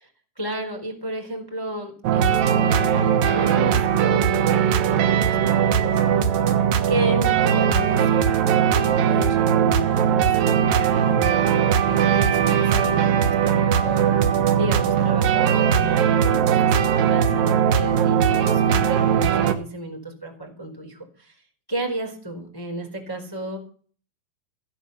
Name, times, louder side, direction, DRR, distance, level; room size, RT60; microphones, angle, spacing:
voice 1, 0.4-6.4 6.9-11.4 11.8-21.3 21.7-23.6, right 1 dB, 5° left, 2 dB, 3.2 m, -32 dB
sound 1, 2.0-19.5, right 8 dB, 80° right, 2.0 m, -19 dB
15.5 x 9.0 x 7.0 m, 0.43 s
omnidirectional pair, 5.9 m